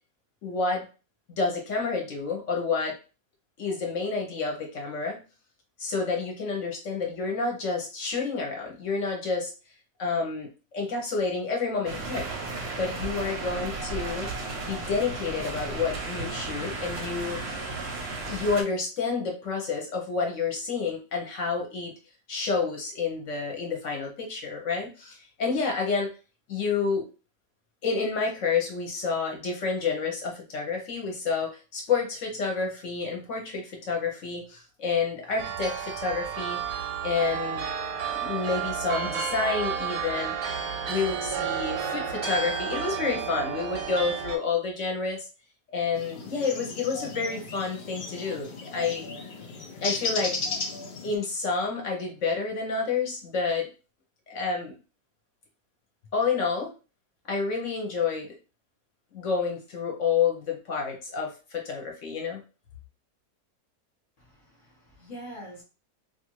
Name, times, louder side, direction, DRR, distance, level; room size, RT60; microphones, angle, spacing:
voice 1, 0.4-0.9 1.3-2.9 3.6-5.2 5.8-9.5 10.0-12.3 12.8-14.3 14.6-17.4 18.2-21.9 22.3-26.1 26.5-27.1 27.8-36.6 37.0-37.7 38.1-40.6 40.9-45.2 45.7-49.1 49.8-50.4 51.0-53.7 54.3-54.7 56.1-56.7 57.3-58.3 59.1-62.4, left 4 dB, 60° left, 0 dB, 0.9 m, -29 dB
sound 1, 11.8-18.6, right 3 dB, 55° right, 0.8 m, -34 dB
sound 2, 35.4-44.4, right 7 dB, 80° right, 1.1 m, -31 dB
sound 3, 45.9-51.2, left 4 dB, 90° left, 0.4 m, -35 dB
voice 2, 64.2-65.6, equal, 40° left, -1 dB, 1.0 m, -44 dB
2.5 x 2.4 x 3.0 m, 0.33 s
omnidirectional pair, 1.6 m